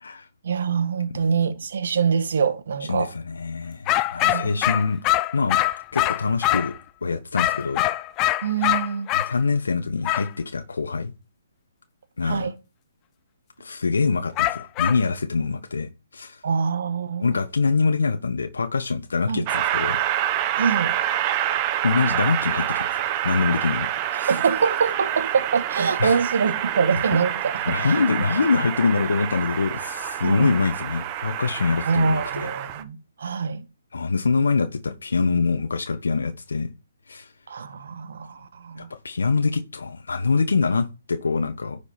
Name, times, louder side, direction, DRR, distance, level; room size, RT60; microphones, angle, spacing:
voice 1, 0.4-3.1 4.2-4.8 8.4-9.1 12.2-12.5 16.4-17.3 19.3-19.5 20.6-21.0 24.1-28.0 30.2-30.6 31.8-33.6 37.5-38.9, right 6 dB, 60° right, 1.3 m, -25 dB
voice 2, 2.9-5.0 5.3-5.6 5.9-6.7 7.0-7.8 9.1-11.1 12.2-12.5 13.6-16.4 17.2-20.0 21.8-23.9 24.2-24.3 26.0-26.2 27.7-32.5 33.9-36.7 37.1-37.3 38.8-41.8, left 4 dB, 75° left, 1.1 m, -24 dB
sound 1, 3.9-6.8 7.4-9.3 10.0-10.3 14.4-15.0, left 16 dB, 25° left, 0.5 m, -23 dB
Train, 19.5-32.8, right 12 dB, 30° right, 0.9 m, -27 dB
10.0 x 5.1 x 4.3 m
hypercardioid pair, 145°, 0 cm